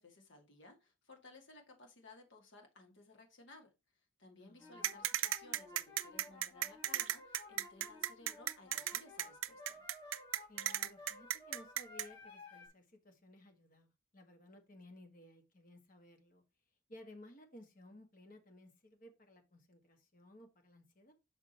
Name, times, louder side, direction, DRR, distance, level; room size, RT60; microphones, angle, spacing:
voice 1, 0.0-3.7 4.2-9.8, left 3 dB, 55° left, 2.1 m, -59 dB
voice 2, 4.4-5.0 10.5-16.4 16.9-21.1, left 1 dB, 40° left, 1.5 m, -58 dB
sound 1, 4.6-12.7, left 2 dB, 25° left, 2.7 m, -55 dB
sound 2, 4.8-12.1, right 13 dB, 70° right, 0.4 m, -36 dB
6.2 x 4.9 x 4.2 m
head